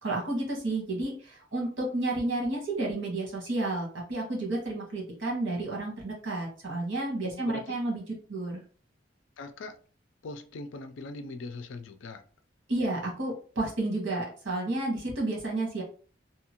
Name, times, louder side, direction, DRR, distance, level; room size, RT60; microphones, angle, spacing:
voice 1, 0.0-8.0 8.3-8.6 12.7-15.8, right 2 dB, 90° right, 1.2 m, -31 dB
voice 2, 7.2-7.8 9.4-9.8 10.2-12.2, left 3 dB, 85° left, 0.4 m, -41 dB
2.8 x 2.4 x 2.9 m
head